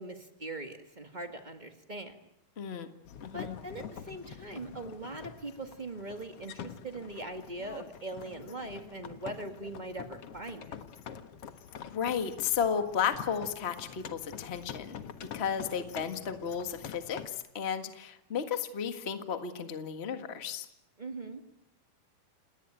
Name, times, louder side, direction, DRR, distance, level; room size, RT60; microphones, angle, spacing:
voice 1, 0.0-2.2 3.3-10.8 21.0-21.4, right 2 dB, 75° right, 6 dB, 0.4 m, -41 dB
voice 2, 2.6-2.9 3.2-3.6 11.9-15.0 15.3-20.7, left 7 dB, 90° left, 8 dB, 0.5 m, -33 dB
sound 1, 3.0-17.3, left 8 dB, 55° left, 1.8 m, -46 dB
29.0 x 19.0 x 9.0 m, 0.83 s
omnidirectional pair, 4.2 m